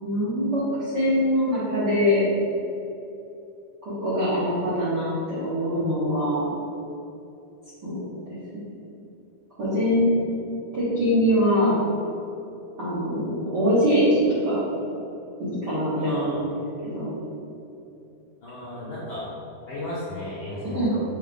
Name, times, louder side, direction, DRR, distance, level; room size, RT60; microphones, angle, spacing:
voice 1, 0.0-2.2 3.8-6.5 7.8-8.4 9.6-10.1 10.7-11.7 12.8-14.6 15.4-17.1 20.7-20.9, equal, 45° right, -10 dB, 1.5 m, -23 dB
voice 2, 15.9-16.3 18.4-19.3 19.7-21.0, left 1 dB, 85° left, -9 dB, 1.1 m, -34 dB
6.1 x 5.7 x 3.7 m, 2.8 s
omnidirectional pair, 4.0 m